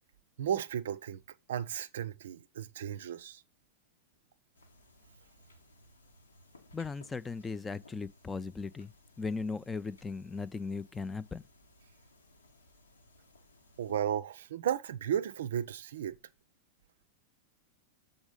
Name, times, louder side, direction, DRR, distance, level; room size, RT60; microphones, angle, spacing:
voice 1, 0.4-1.2 1.5-3.4 13.8-16.2, right 9 dB, 60° right, 0.5 m, -34 dB
sound 1, 4.5-14.0, left 2 dB, 75° left, 1.3 m, -61 dB
voice 2, 6.7-8.9 9.2-11.4, left 4 dB, 15° left, 0.4 m, -37 dB
7.1 x 3.8 x 5.0 m
figure-of-eight pair, 90°, 0 cm